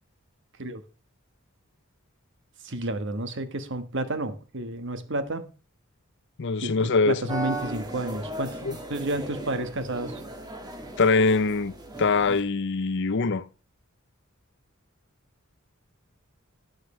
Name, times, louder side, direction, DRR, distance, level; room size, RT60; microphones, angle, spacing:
voice 1, 2.6-5.5 6.6-8.6 8.9-10.2, right 1 dB, 60° right, 1.4 m, -31 dB
voice 2, 6.4-7.2 8.6-8.7 11.0-11.7 12.0-13.5, left 4 dB, 55° left, 0.6 m, -23 dB
sound 1, 7.3-12.4, right 2 dB, 20° right, 1.8 m, -37 dB
12.0 x 9.4 x 3.2 m
head